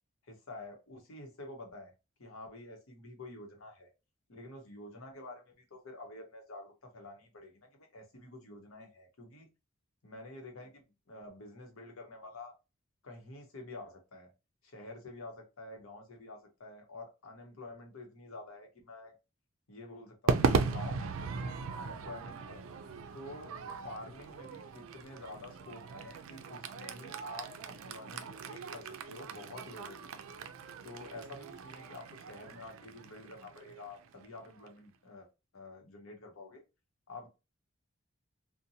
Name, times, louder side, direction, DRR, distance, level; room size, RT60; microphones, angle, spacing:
voice 1, 0.3-1.9 2.2-3.9 4.3-9.5 10.0-10.8 11.1-12.5 13.0-14.3 14.6-19.1 19.7-21.2 21.7-22.6 23.1-23.5 23.8-30.2 30.8-36.6 37.1-37.3, left 2 dB, 80° left, 0.9 m, -48 dB
Crowd / Fireworks, 20.3-34.7, right 5 dB, 75° right, 0.3 m, -37 dB
2.6 x 2.1 x 2.7 m
head